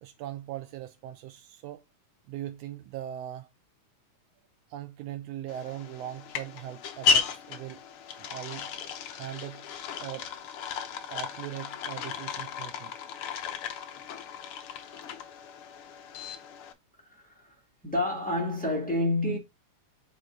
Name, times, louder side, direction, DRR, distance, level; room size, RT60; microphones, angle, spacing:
voice 1, 0.0-1.8 2.3-3.5 4.7-7.8 8.2-8.7 9.2-9.6 10.0-10.3 11.1-12.9, right 12 dB, 85° right, 1.4 m, -40 dB
sound 1, 5.5-16.7, left 5 dB, 65° left, 1.4 m, -34 dB
voice 2, 17.1-17.5 17.8-19.4, left 1 dB, 5° left, 1.5 m, -29 dB
8.3 x 3.7 x 3.8 m
omnidirectional pair, 3.4 m